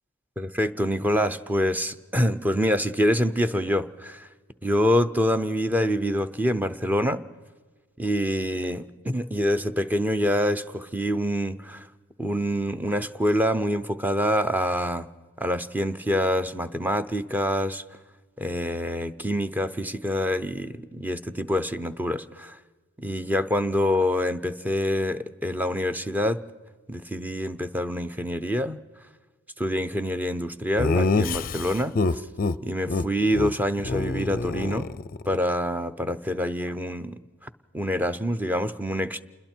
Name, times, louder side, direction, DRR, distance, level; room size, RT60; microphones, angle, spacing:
voice 1, 0.4-4.3 4.6-7.2 8.0-11.9 12.2-15.1 15.4-17.8 18.4-22.6 23.0-26.4 26.9-28.8 29.6-32.2 32.6-34.9 35.3-37.2 37.7-39.2, equal, 10° right, 11 dB, 0.6 m, -26 dB
Laughter, 30.8-32.6 32.9-33.0 33.3-33.5 33.8-35.4, left 3 dB, 40° left, 0.5 m, -26 dB
28.5 x 21.5 x 4.5 m, 1.4 s
head